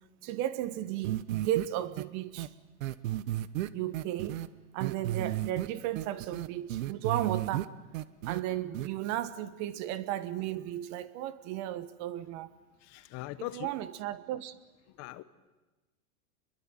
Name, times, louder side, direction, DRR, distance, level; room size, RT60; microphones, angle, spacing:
voice 1, 0.2-2.5 3.7-4.4 4.7-7.7 8.2-12.5 13.5-14.5, right 13 dB, 40° right, 1.4 m, -34 dB
sound 1, 1.0-1.7 2.0-2.1 2.4-2.5 2.8-4.5 4.8-5.7 6.0-7.7 7.9-8.4 8.7-8.9, right 14 dB, 60° right, 1.3 m, -33 dB
voice 2, 12.8-13.7 14.9-15.2, left 17 dB, 35° left, 1.2 m, -40 dB
26.0 x 22.0 x 9.2 m
hypercardioid pair, 135°, 44 cm